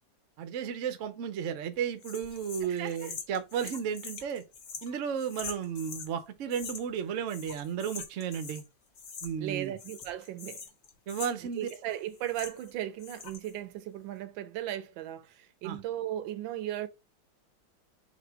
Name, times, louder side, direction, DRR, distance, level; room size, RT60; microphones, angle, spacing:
voice 1, 0.4-4.4 4.8-8.6 9.2-9.7 11.1-11.7 15.6-15.8, right 8 dB, 65° right, 0.7 m, -33 dB
sound 1, 2.0-6.1 6.5-7.0 7.3-8.7 8.9-9.5 9.8-12.7 13.0-13.5, left 5 dB, 55° left, 1.1 m, -44 dB
voice 2, 2.7-3.1 3.6-3.7 9.4-10.6 11.5-16.9, right 12 dB, 85° right, 1.4 m, -37 dB
4.2 x 2.8 x 4.5 m
omnidirectional pair, 2.0 m